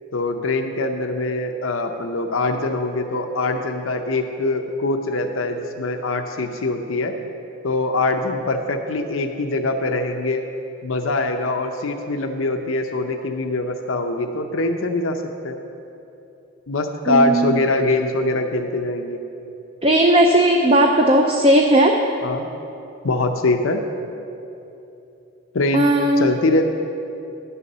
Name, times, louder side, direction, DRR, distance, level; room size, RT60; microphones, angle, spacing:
voice 1, 0.1-7.1 7.6-10.4 10.8-15.6 16.7-19.2 22.2-22.5 23.0-23.8 25.5-26.7, left 2 dB, 85° left, 5 dB, 0.6 m, -23 dB
voice 2, 17.1-17.6 19.8-22.0 25.7-26.4, right 1 dB, 30° right, 2 dB, 0.5 m, -16 dB
10.5 x 6.9 x 6.7 m, 2.8 s
head